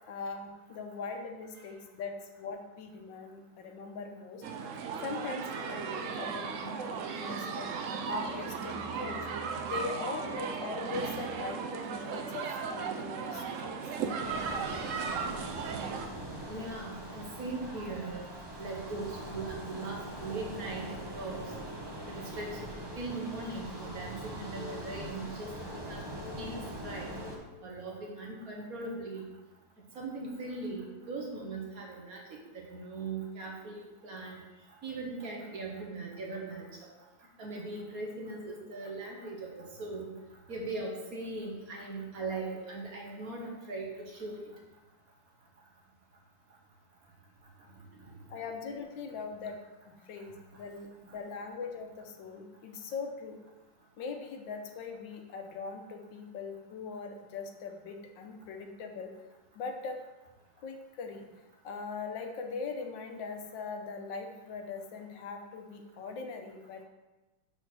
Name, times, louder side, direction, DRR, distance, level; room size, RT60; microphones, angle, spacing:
voice 1, 0.1-4.4 5.0-7.7 8.1-9.3 9.6-13.8 19.9-20.0 48.3-49.6 49.9-53.4 54.0-59.1 59.5-60.0 60.6-61.3 61.6-66.8, left 4 dB, 80° left, 4 dB, 1.5 m, -41 dB
sound 1, 4.4-16.1, right 5 dB, 85° right, 0.6 m, -36 dB
sound 2, 14.2-27.4, right 1 dB, 20° right, 0.7 m, -42 dB
voice 2, 16.5-18.3 18.6-21.4 22.1-22.6 22.9-26.0 26.4-26.6 26.8-27.1 27.6-29.2 29.9-34.4 34.8-36.9 37.4-40.1 40.5-44.5 48.0-48.1, right 3 dB, 50° right, -1 dB, 1.6 m, -39 dB
sound 3, 22.9-27.7, left 7 dB, 60° left, 1.1 m, -50 dB
6.6 x 4.3 x 6.0 m, 1.1 s
omnidirectional pair, 2.1 m